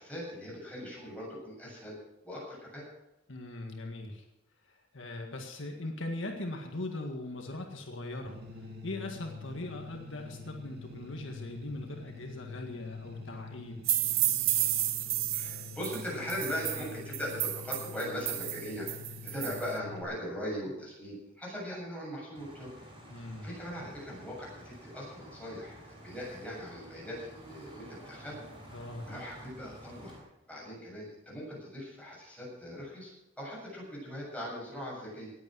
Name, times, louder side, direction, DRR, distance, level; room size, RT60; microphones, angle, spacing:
voice 1, 0.0-2.0 2.2-2.8 15.3-22.7 23.2-28.4 28.7-30.2 30.5-35.3, equal, 5° left, -5 dB, 7.6 m, -40 dB
voice 2, 3.3-4.2 4.7-14.0 23.1-23.5 28.7-29.0, left 2 dB, 75° left, 3 dB, 1.8 m, -40 dB
sound 1, 8.2-20.0, left 4 dB, 55° right, 2.6 m, -46 dB
sound 2, 13.8-19.7, right 14 dB, 85° right, 0.9 m, -32 dB
sound 3, 22.3-30.2, equal, 25° right, 5.6 m, -51 dB
19.0 x 8.7 x 6.3 m, 0.91 s
head